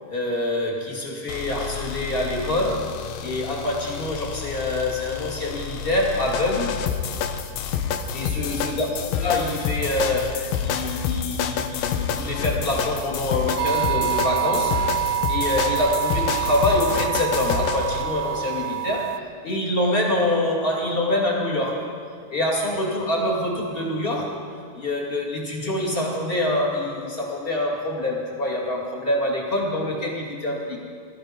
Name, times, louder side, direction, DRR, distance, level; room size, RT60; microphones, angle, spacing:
voice 1, 0.1-2.9 3.2-6.7 8.1-14.8 15.3-21.9 22.3-24.4 24.7-30.8, left 1 dB, 20° left, -2 dB, 2.3 m, -25 dB
sound 1, 1.3-18.0, left 7 dB, 90° left, 2.5 m, -29 dB
sound 2, 13.6-19.2, right 11 dB, 85° right, 2.2 m, -26 dB
19.5 x 13.5 x 5.2 m, 2.2 s
omnidirectional pair, 3.9 m